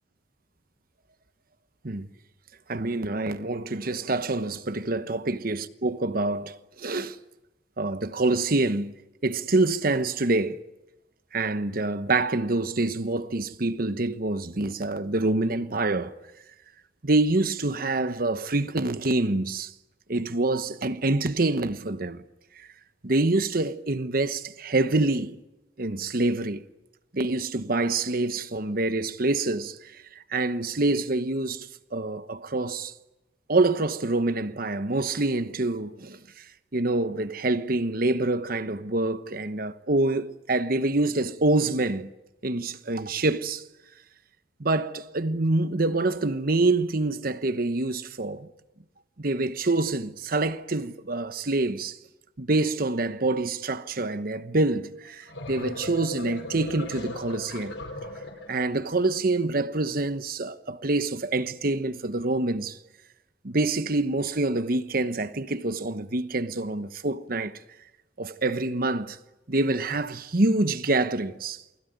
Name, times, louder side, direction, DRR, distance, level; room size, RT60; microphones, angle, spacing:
voice 1, 2.7-7.2 7.8-8.9 9.2-10.6 11.3-16.1 17.0-19.7 20.1-22.2 23.0-25.3 25.8-26.6 27.1-32.9 33.5-36.4 36.7-42.1 42.4-43.6 44.6-48.5 49.2-52.0 52.4-57.8 58.5-62.8 63.4-67.6 68.2-69.2 69.5-71.6, right 2 dB, 55° right, 1.1 m, -26 dB
sound 1, 55.1-58.9, left 1 dB, 80° left, 4.8 m, -38 dB
28.5 x 20.5 x 9.4 m
head